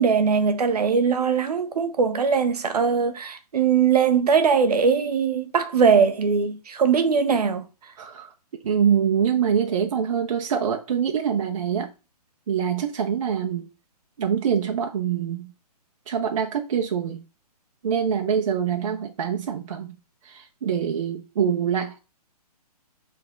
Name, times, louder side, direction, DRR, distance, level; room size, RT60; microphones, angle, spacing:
voice 1, 0.0-7.6, right 6 dB, 70° right, 1.4 m, -21 dB
voice 2, 8.0-8.3 8.6-11.9 12.5-13.7 14.2-15.5 16.1-17.2 17.8-19.9 20.2-22.0, right 8 dB, 55° right, 0.9 m, -24 dB
6.8 x 3.7 x 3.9 m
hypercardioid pair, 165°, 20 cm